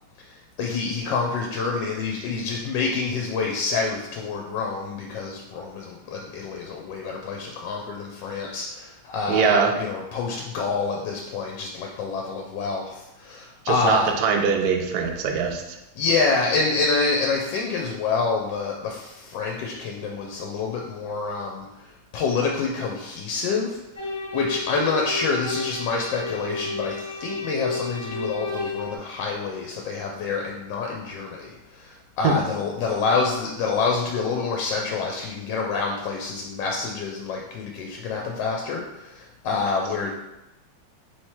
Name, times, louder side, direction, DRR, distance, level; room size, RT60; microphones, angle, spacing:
voice 1, 0.6-14.1 16.0-21.9 22.1-23.8 24.3-40.1, left 4 dB, 75° left, 0 dB, 1.2 m, -27 dB
voice 2, 9.3-9.7 13.7-15.6 32.2-32.4, right 6 dB, 70° right, 3 dB, 0.9 m, -22 dB
sound 1, 23.9-29.0, left 3 dB, 5° left, 0.7 m, -31 dB
3.3 x 3.1 x 4.3 m, 0.93 s
omnidirectional pair, 2.2 m